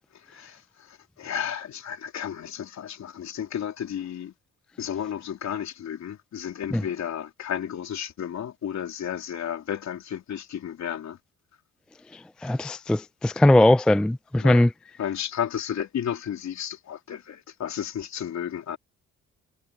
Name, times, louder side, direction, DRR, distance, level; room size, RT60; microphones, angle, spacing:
voice 1, 0.3-4.3 4.8-11.2 14.4-14.6 15.0-18.8, left 9 dB, 65° left, 3.4 m, -33 dB
voice 2, 12.4-14.7, left 1 dB, 5° left, 0.3 m, -19 dB
cardioid pair, 90°, 30 cm